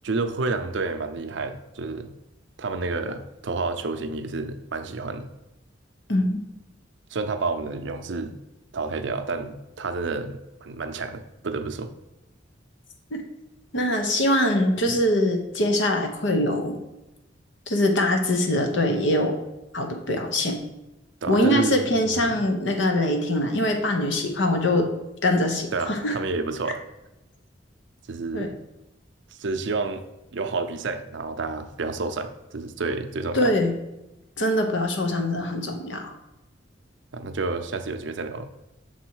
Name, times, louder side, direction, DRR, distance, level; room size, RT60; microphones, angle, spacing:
voice 1, 0.0-2.1 2.6-5.3 7.1-8.3 8.7-11.9 21.2-22.3 25.7-26.8 28.1-28.5 29.3-30.0 30.3-33.5 37.1-38.5, right 3 dB, 70° right, 8 dB, 0.5 m, -30 dB
voice 2, 13.7-16.7 17.7-19.4 19.7-20.6 21.3-24.9 25.2-26.2 28.3-28.5 33.3-33.7 34.4-36.1, left 1 dB, 75° left, 4 dB, 0.9 m, -23 dB
6.3 x 4.1 x 4.6 m, 0.94 s
head